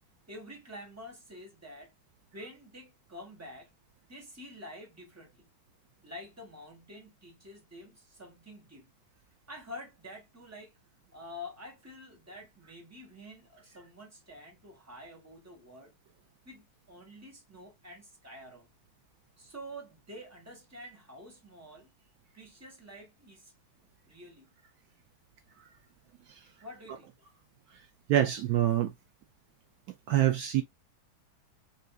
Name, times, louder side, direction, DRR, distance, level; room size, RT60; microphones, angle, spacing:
voice 1, 0.3-1.9 2.3-3.7 4.1-5.5 6.0-8.9 9.5-10.8 11.1-15.9 16.4-18.7 19.4-22.0 22.3-23.5 24.1-24.5 26.6-27.3, left 1 dB, 10° right, 1.1 m, -48 dB
voice 2, 28.1-28.9 30.1-30.6, right 12 dB, 85° right, 0.8 m, -25 dB
5.1 x 2.7 x 2.2 m
omnidirectional pair, 2.2 m